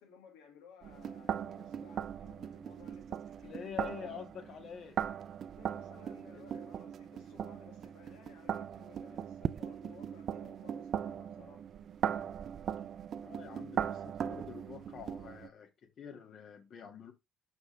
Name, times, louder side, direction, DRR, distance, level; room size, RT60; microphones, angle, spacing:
voice 1, 0.0-4.2 5.5-11.7, left 6 dB, 85° left, 1.8 m, -58 dB
sound 1, 0.8-15.5, right 8 dB, 55° right, 0.4 m, -39 dB
voice 2, 3.4-5.0 6.3-6.4 13.2-15.7 16.0-17.1, left 8 dB, 55° left, 1.7 m, -47 dB
6.1 x 6.0 x 3.1 m
supercardioid pair, 70°, 0 cm